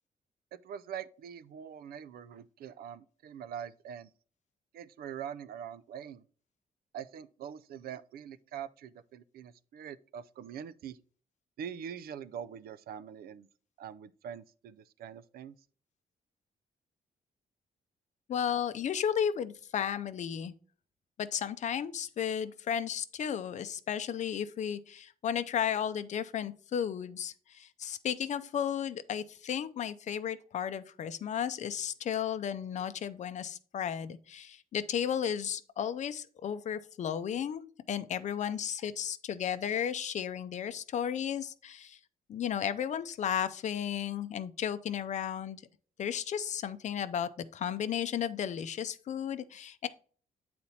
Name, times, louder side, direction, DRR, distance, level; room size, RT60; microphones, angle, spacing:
voice 1, 0.5-4.1 4.7-6.2 6.9-11.0 11.6-13.5 13.8-15.6, right 8 dB, 75° right, 0.5 m, -43 dB
voice 2, 18.3-20.5 21.2-42.0 42.3-45.6 46.0-49.9, left 8 dB, 50° left, 0.6 m, -34 dB
8.1 x 4.3 x 4.2 m
wide cardioid pair, 165°, 16 cm